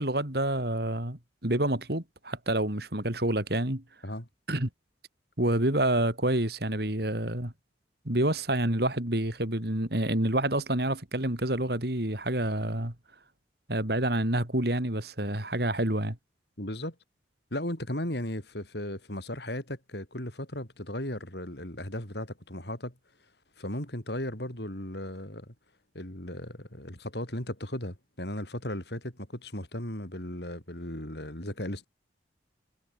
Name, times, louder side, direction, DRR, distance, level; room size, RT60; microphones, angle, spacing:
voice 1, 0.0-3.8 4.5-4.7 5.4-7.5 8.0-12.9 13.7-16.2, right 1 dB, 55° right, 3.4 m, -28 dB
voice 2, 16.6-17.0 17.5-22.9 23.6-25.5 25.9-31.9, left 1 dB, 60° left, 5.6 m, -36 dB
head